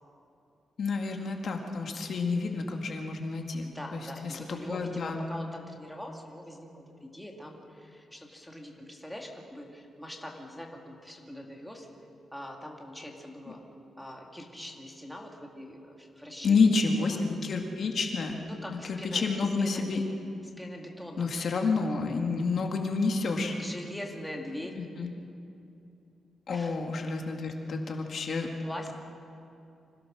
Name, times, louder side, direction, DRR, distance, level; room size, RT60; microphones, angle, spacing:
voice 1, 0.8-5.3 16.4-18.4 18.7-20.0 21.2-23.6 24.8-25.1 26.5-28.5, left 4 dB, 50° left, 2 dB, 2.0 m, -29 dB
voice 2, 3.6-11.9 12.3-13.6 14.0-16.7 17.0-17.3 18.4-19.8 20.4-21.5 23.6-24.8 26.5-26.8 28.6-28.9, left 1 dB, ahead, 0 dB, 2.1 m, -43 dB
26.0 x 16.5 x 6.3 m, 2.6 s
wide cardioid pair, 155°, 0 cm